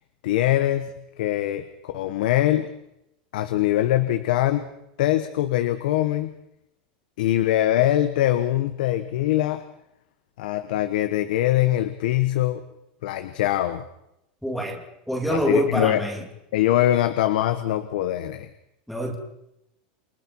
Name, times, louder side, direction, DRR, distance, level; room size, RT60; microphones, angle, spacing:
voice 1, 0.2-2.7 3.3-4.7 5.0-6.3 7.2-9.6 10.4-12.6 13.0-13.8 15.3-16.0 16.5-18.5, left 13 dB, 75° left, 10 dB, 1.2 m, -23 dB
voice 2, 14.4-16.2 18.9-19.2, equal, ahead, 2 dB, 2.5 m, -26 dB
29.0 x 22.5 x 4.7 m, 0.84 s
supercardioid pair, 160°, 5 cm